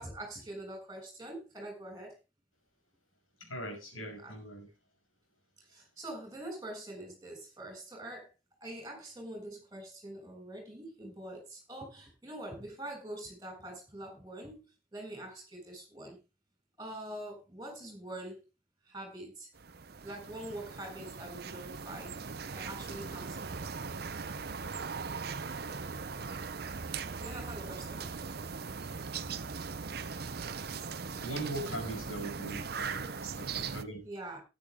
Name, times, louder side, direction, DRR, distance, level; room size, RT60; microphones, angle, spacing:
voice 1, 0.0-2.2 4.2-4.4 5.7-8.3 8.6-14.6 14.9-16.2 16.8-18.4 18.9-19.5 20.0-22.1 22.5-23.7 27.1-28.1 31.6-31.7 34.0-34.4, right 1 dB, 15° right, 6.9 m, -44 dB
voice 2, 3.4-4.7 31.2-34.0, right 1 dB, 85° left, 6.0 m, -40 dB
sound 1, 19.5-33.8, right 5 dB, 50° right, 0.7 m, -39 dB
13.0 x 10.5 x 3.7 m
head